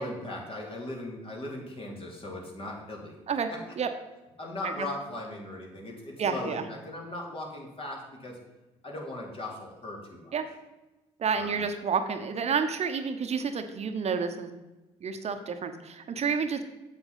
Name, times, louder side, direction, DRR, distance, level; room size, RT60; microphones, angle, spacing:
voice 1, 0.0-3.2 3.5-3.7 4.4-8.4 8.8-10.3 11.3-11.6, left 1 dB, 35° left, -1 dB, 3.1 m, -38 dB
voice 2, 6.2-6.6 10.3-10.5 11.2-14.5 15.0-16.7, right 6 dB, 45° right, 7 dB, 1.0 m, -29 dB
8.0 x 7.5 x 5.7 m, 1.1 s
hypercardioid pair, 50°, 15 cm